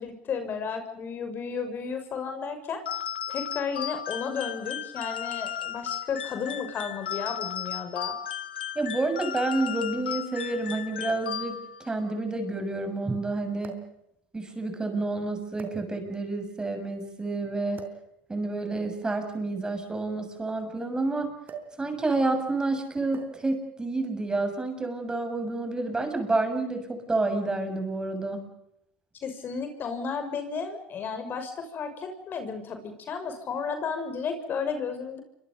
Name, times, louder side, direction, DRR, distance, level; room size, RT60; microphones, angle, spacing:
voice 1, 0.0-2.8 3.3-8.1 29.2-35.2, left 5 dB, 40° left, 7 dB, 6.3 m, -33 dB
sound 1, 2.9-11.9, left 9 dB, 90° left, 1.3 m, -35 dB
voice 2, 8.8-13.8 14.3-17.9 18.3-21.3 21.8-28.5, right 2 dB, 15° right, 7 dB, 7.0 m, -29 dB
sound 2, 9.9-10.0 11.1-11.2 11.4-11.5 13.6-14.0 14.8-15.0 15.5-16.2 17.7-18.1 19.2-20.8 21.4-21.8 22.1-22.4 23.1-23.5 24.5-24.7, right 6 dB, 35° right, 4.4 m, -44 dB
28.5 x 25.0 x 5.4 m, 0.79 s
hypercardioid pair, 85°, 5 cm